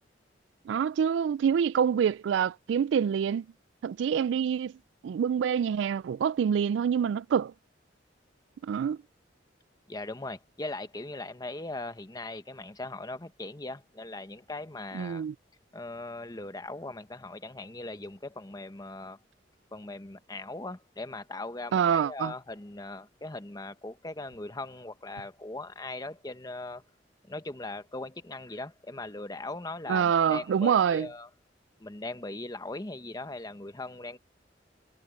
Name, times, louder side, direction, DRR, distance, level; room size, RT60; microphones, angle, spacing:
voice 1, 0.7-3.5 3.8-4.7 5.0-7.5 8.6-9.0 14.9-15.3 21.7-22.3 29.9-31.1, right 7 dB, 75° right, 0.3 m, -26 dB
voice 2, 9.9-15.2 15.7-19.2 19.7-26.8 27.3-31.3 31.8-34.2, left 2 dB, 20° left, 1.0 m, -39 dB
head